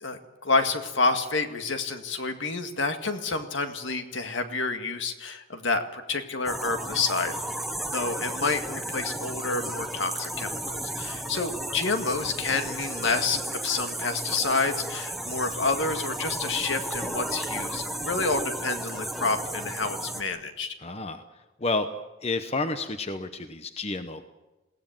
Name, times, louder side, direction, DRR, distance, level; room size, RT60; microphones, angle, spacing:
voice 1, 0.0-7.3 7.9-20.7, left 3 dB, 70° left, 7 dB, 2.0 m, -29 dB
sound 1, 6.4-20.2, right 1 dB, ahead, 1.3 m, -34 dB
voice 2, 20.8-21.9 22.2-24.2, left 3 dB, 30° left, 9 dB, 0.9 m, -30 dB
21.5 x 17.0 x 9.0 m, 1.1 s
head